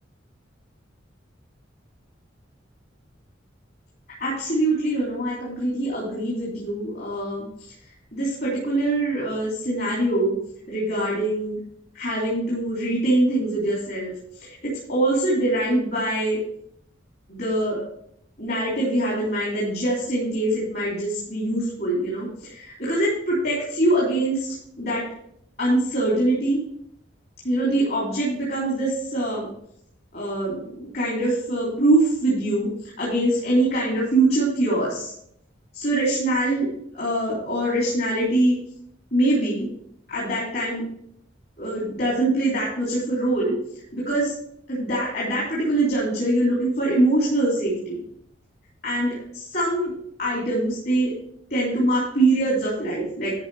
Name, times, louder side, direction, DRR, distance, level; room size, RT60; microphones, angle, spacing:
voice 1, 4.2-7.7 8.1-10.3 10.7-11.6 11.9-14.1 14.4-16.4 17.3-17.8 18.4-24.5 24.8-25.0 25.6-26.6 27.4-29.5 30.1-32.7 33.0-35.1 35.7-36.7 36.9-38.6 39.1-39.7 40.1-40.8 41.6-43.5 43.9-44.3 44.7-48.0 48.8-49.9 50.2-51.1 51.5-53.3, right 1 dB, 55° left, -6 dB, 3.4 m, -23 dB
12.0 x 5.5 x 4.9 m, 0.70 s
head